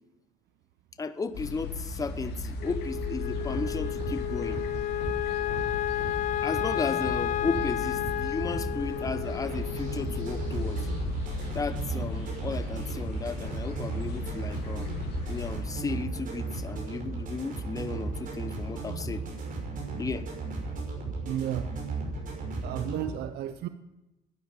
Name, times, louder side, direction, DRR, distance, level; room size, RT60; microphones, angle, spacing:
voice 1, 1.0-4.6 6.4-10.9 11.5-14.9 15.3-19.2 20.0-20.3, left 4 dB, 20° left, 12 dB, 0.9 m, -34 dB
sound 1, 1.3-15.6, left 3 dB, 75° left, 2.8 m, -37 dB
Wind instrument woodwind instrument, 2.6-11.1, left 13 dB, 50° left, 0.5 m, -32 dB
sound 2, 3.3-23.1, right 3 dB, 55° right, 6.0 m, -36 dB
voice 2, 21.2-21.7 22.6-23.7, right 11 dB, 75° right, 10 dB, 0.8 m, -32 dB
12.0 x 10.5 x 9.1 m, 0.97 s
cardioid pair, 110°, 17 cm